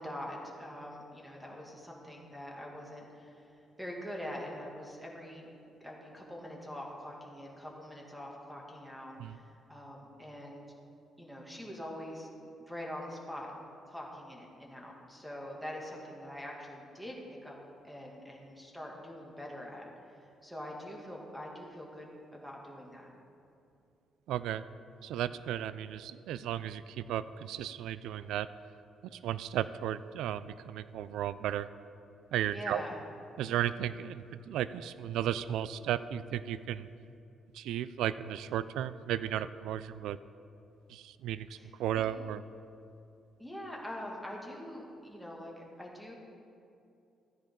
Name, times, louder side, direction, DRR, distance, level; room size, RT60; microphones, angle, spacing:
voice 1, 0.0-5.5 5.8-10.7 11.2-12.3 12.6-13.5 13.8-17.6 17.8-19.9 20.2-22.1 22.3-23.1 32.5-33.0 41.6-42.0 43.4-46.1, left 1 dB, 5° right, -2 dB, 2.3 m, -44 dB
voice 2, 24.3-24.6 25.0-28.5 29.2-31.7 32.3-32.8 33.4-36.9 37.5-40.2 40.9-41.5 41.8-42.4, right 11 dB, 85° right, 15 dB, 0.3 m, -34 dB
14.5 x 9.9 x 3.8 m, 2.6 s
cardioid pair, 90°, 0 cm